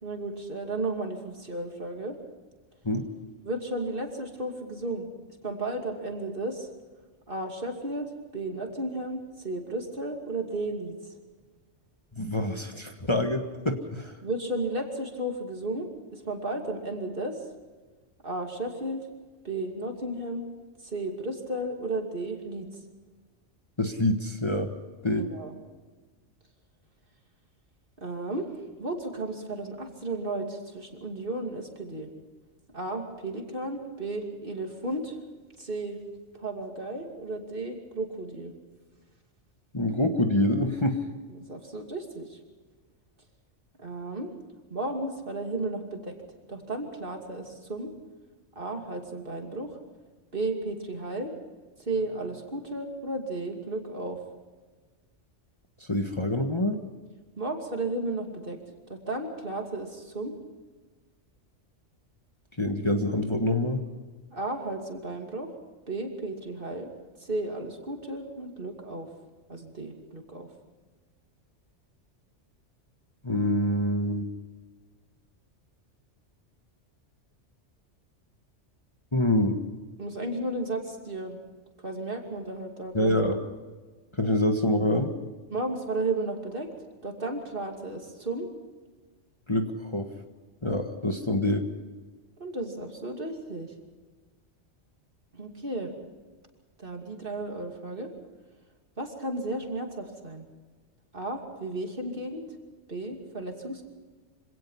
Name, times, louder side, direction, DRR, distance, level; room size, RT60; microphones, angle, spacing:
voice 1, 0.0-2.2 3.4-5.1 5.4-6.7 7.3-11.0 14.2-17.4 18.2-19.0 19.4-20.4 20.8-22.7 25.2-25.6 28.0-28.5 28.8-32.1 32.7-35.2 35.6-36.0 36.3-38.5 41.3-42.4 43.8-44.3 44.7-46.2 46.5-47.9 48.6-49.8 50.3-51.3 51.9-54.2 57.4-58.6 58.9-60.3 64.3-65.5 65.9-66.9 67.2-69.1 69.5-70.5 80.0-81.4 81.8-83.2 85.5-86.7 87.0-88.5 92.4-93.7 95.3-95.9 96.8-98.1 99.0-100.4 101.1-102.5 102.9-103.8, right 2 dB, 50° right, 3 dB, 2.9 m, -33 dB
voice 2, 12.2-14.1 23.8-24.7 25.0-25.2 39.7-41.0 55.8-56.8 62.6-63.8 73.2-74.3 79.1-79.6 82.9-83.3 84.2-85.1 89.5-90.1 90.6-91.7, left 1 dB, 25° left, 3 dB, 1.6 m, -26 dB
25.5 x 18.0 x 5.7 m, 1.3 s
omnidirectional pair, 1.2 m